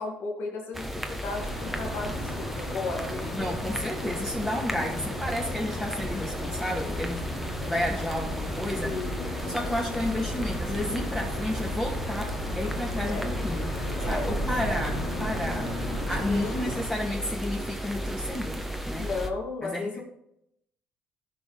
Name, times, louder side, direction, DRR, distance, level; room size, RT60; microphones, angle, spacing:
voice 1, 0.0-3.5 8.8-9.7 13.1-13.3 14.0-14.7 16.3-17.1 19.0-20.0, left 3 dB, 65° left, 0 dB, 2.1 m, -35 dB
sound 1, 0.7-19.3, equal, 5° right, 1.2 m, -35 dB
sound 2, 1.4-16.8, left 1 dB, 85° left, 2.3 m, -35 dB
voice 2, 3.3-7.2 7.6-8.9 9.5-13.7 14.1-15.7 16.1-19.1 19.6-20.0, left 1 dB, 15° left, -4 dB, 2.0 m, -31 dB
14.0 x 5.3 x 3.9 m, 0.78 s
supercardioid pair, 75°, 4 cm